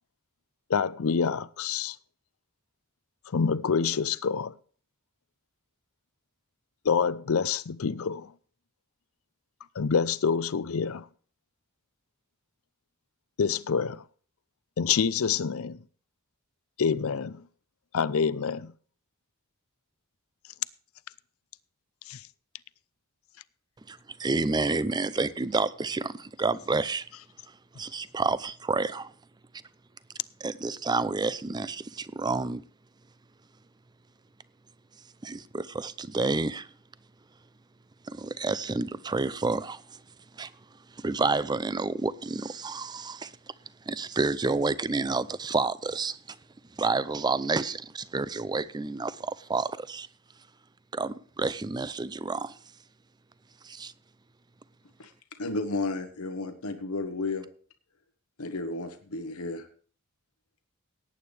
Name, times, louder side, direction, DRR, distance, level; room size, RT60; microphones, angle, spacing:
voice 1, 0.7-2.0 3.3-4.6 6.8-8.3 9.8-11.1 13.4-14.0 14.8-15.8 16.8-17.4 17.9-18.7 22.1-22.2, left 6 dB, 70° left, 0.5 m, -27 dB
voice 2, 23.9-27.0 27.8-29.1 30.4-32.6 35.2-36.7 38.1-39.8 40.4-40.5 41.0-43.3 43.9-46.4 46.8-50.1 50.9-52.6 53.6-53.9, right 3 dB, 20° right, 0.5 m, -29 dB
voice 3, 55.4-57.5 58.4-59.7, left 2 dB, 85° left, 1.2 m, -32 dB
18.0 x 8.8 x 3.3 m
head